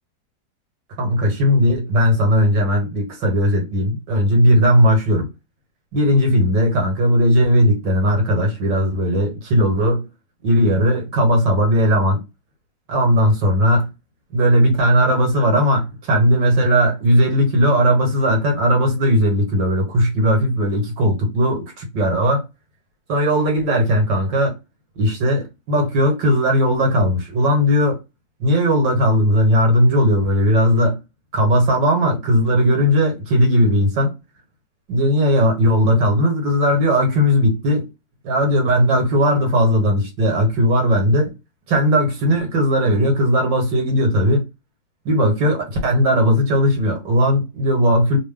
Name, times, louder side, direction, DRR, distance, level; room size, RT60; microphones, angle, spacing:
voice 1, 1.0-5.3 5.9-10.0 10.4-12.2 12.9-13.9 14.3-22.4 23.1-24.6 25.0-28.0 28.4-31.0 31.3-34.1 34.9-37.9 38.2-41.3 41.7-44.4 45.1-48.2, equal, 70° right, 2.0 m, -17 dB
3.7 x 2.2 x 3.7 m
omnidirectional pair, 2.0 m